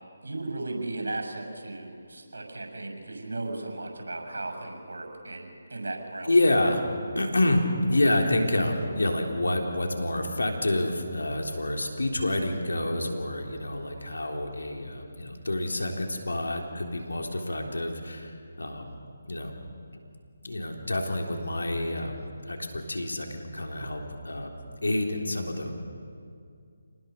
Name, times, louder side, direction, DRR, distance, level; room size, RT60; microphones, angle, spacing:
voice 1, 0.2-6.3, right 2 dB, 75° right, 4 dB, 6.7 m, -36 dB
voice 2, 6.2-6.8 7.2-19.0 19.3-19.6 20.4-24.6 24.8-25.7, left 1 dB, 80° left, 2 dB, 3.6 m, -28 dB
28.0 x 19.5 x 6.7 m, 2.3 s
figure-of-eight pair, 155°, 0 cm